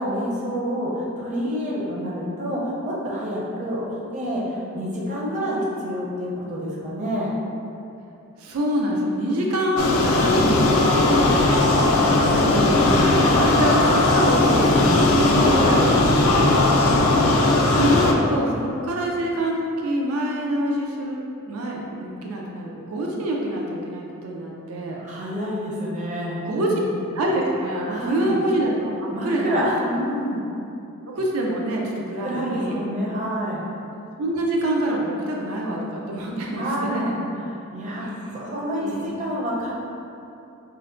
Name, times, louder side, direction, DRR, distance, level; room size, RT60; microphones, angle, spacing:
voice 1, 0.0-3.8 4.1-7.3 11.7-12.5 16.8-17.2 25.0-26.8 27.9-28.4 29.1-30.4 32.2-33.7 36.6-37.2 37.7-38.1 38.3-39.7, equal, 35° right, -5 dB, 0.5 m, -28 dB
voice 2, 8.4-11.8 12.3-16.5 17.7-25.0 26.4-26.7 27.1-29.7 31.1-32.8 34.2-36.6 36.9-37.1 38.0-38.4 38.6-39.1, right 1 dB, 85° right, -2 dB, 0.5 m, -26 dB
sound 1, 9.8-18.1, left 2 dB, 80° left, 0.3 m, -18 dB
4.3 x 2.1 x 2.5 m, 2.7 s
head